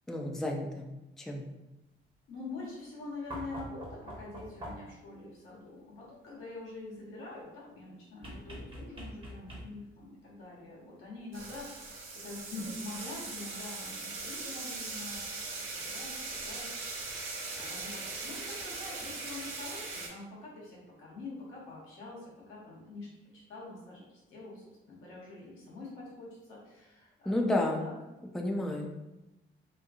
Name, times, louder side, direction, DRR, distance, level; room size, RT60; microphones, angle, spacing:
voice 1, 0.1-0.8 1.2-1.4 27.3-27.8 28.3-28.9, left 1 dB, ahead, 1 dB, 0.3 m, -31 dB
voice 2, 2.3-11.7 12.2-15.2 15.5-16.7 17.0-17.1 17.5-23.1 23.3-27.5 27.8-27.9, left 3 dB, 90° left, -5 dB, 1.0 m, -45 dB
sound 1, 3.3-5.0 8.2-10.0 11.5-11.6, equal, 25° right, 0.8 m, -44 dB
sound 2, 11.3-20.1, right 3 dB, 85° right, 0.7 m, -40 dB
2.7 x 2.6 x 2.4 m, 0.99 s
cardioid pair, 90°, 20 cm